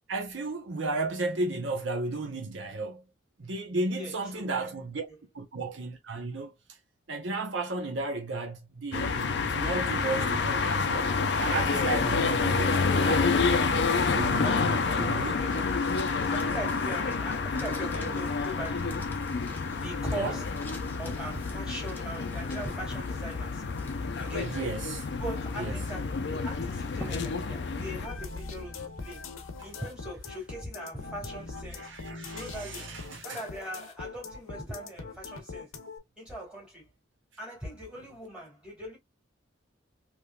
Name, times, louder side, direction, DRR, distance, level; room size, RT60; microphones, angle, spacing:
voice 1, 0.1-3.0 3.4-5.0 5.3-6.5 7.1-11.1 11.4-13.3 14.1-15.3 16.2-16.3 20.2-20.3 24.4-25.0 25.6-25.8 29.6-29.7 31.7-33.4, right 2 dB, 65° right, 0.7 m, -34 dB
voice 2, 3.9-4.7 11.7-11.8 14.4-15.8 16.3-19.1 19.7-20.6 21.0-23.7 24.2-24.6 25.2-29.3 29.6-31.9 32.3-32.9 33.2-35.7 36.2-36.9 37.4-39.0, right 1 dB, 5° right, 1.8 m, -40 dB
sound 1, 8.9-28.1, left 4 dB, 55° left, 0.4 m, -28 dB
sound 2, 15.5-28.1, left 1 dB, 10° left, 0.6 m, -50 dB
sound 3, 28.0-36.0, left 4 dB, 90° left, 0.8 m, -42 dB
3.5 x 3.0 x 2.2 m
head